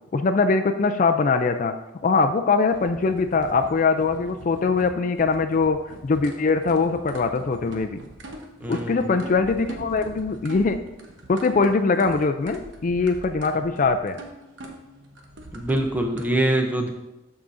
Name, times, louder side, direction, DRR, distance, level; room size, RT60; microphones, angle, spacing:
voice 1, 0.1-1.7 2.0-8.0 8.7-10.8 11.3-14.2, left 4 dB, 40° left, 8 dB, 0.3 m, -22 dB
sound 1, 2.7-16.3, right 1 dB, 70° right, 1.0 m, -42 dB
voice 2, 8.6-9.1 15.5-16.9, right 1 dB, 10° right, 3 dB, 0.6 m, -24 dB
12.5 x 4.8 x 2.6 m, 0.95 s
head